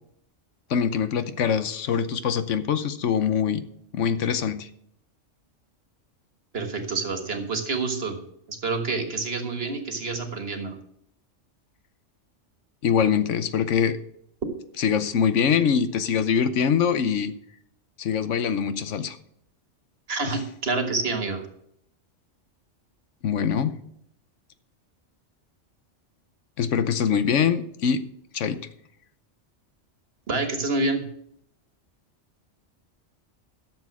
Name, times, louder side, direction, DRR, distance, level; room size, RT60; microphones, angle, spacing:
voice 1, 0.7-3.7 3.9-4.7 12.8-14.0 14.8-17.3 18.0-19.2 23.2-23.8 26.6-28.0 28.3-28.6, left 7 dB, 85° left, 12 dB, 1.1 m, -23 dB
voice 2, 6.5-8.2 8.5-10.8 20.1-21.4 30.3-31.0, right 3 dB, 55° right, 5 dB, 1.8 m, -28 dB
12.0 x 7.2 x 5.9 m, 0.73 s
omnidirectional pair, 1.2 m